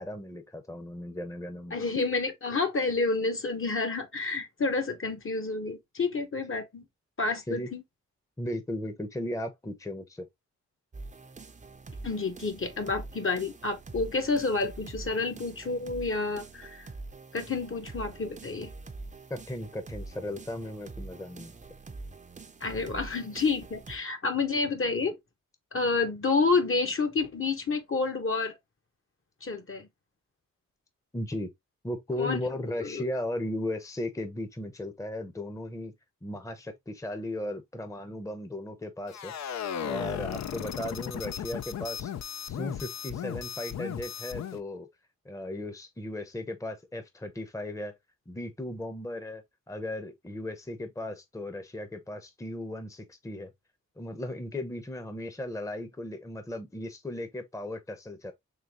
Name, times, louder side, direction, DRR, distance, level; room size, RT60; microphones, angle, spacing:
voice 1, 0.0-1.8 7.5-7.7 8.4-10.3 19.3-21.5 31.1-31.5 31.8-35.9 36.2-39.3 39.8-42.1 42.4-44.9 45.2-47.9 48.3-53.5 54.0-58.3, left 1 dB, 10° left, 0.8 m, -36 dB
voice 2, 1.7-6.8 7.2-7.8 12.0-16.9 17.3-18.7 22.6-25.2 25.7-28.5 29.4-29.9 32.2-32.4 32.8-33.0, left 3 dB, 45° left, 1.0 m, -29 dB
sound 1, 10.9-24.0, right 3 dB, 25° right, 0.6 m, -45 dB
sound 2, 39.1-44.6, left 9 dB, 65° left, 0.5 m, -36 dB
3.9 x 3.1 x 2.9 m
cardioid pair, 50°, 30 cm